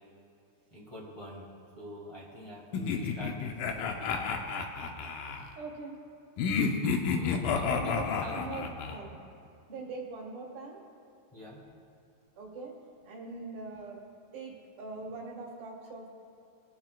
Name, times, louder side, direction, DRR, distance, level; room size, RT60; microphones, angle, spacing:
voice 1, 0.7-1.4 1.7-4.2 7.1-8.6 11.3-11.6, equal, 10° left, -5 dB, 1.7 m, -45 dB
sound 1, 2.7-5.4 6.4-9.0, left 5 dB, 80° left, 2.4 m, -31 dB
voice 2, 5.6-5.9 7.6-9.2 9.7-10.8 12.4-12.7 13.0-14.0 14.3-14.5 14.8-16.1, right 3 dB, 45° right, -2 dB, 2.9 m, -42 dB
23.0 x 8.9 x 2.4 m, 2.7 s
omnidirectional pair, 3.9 m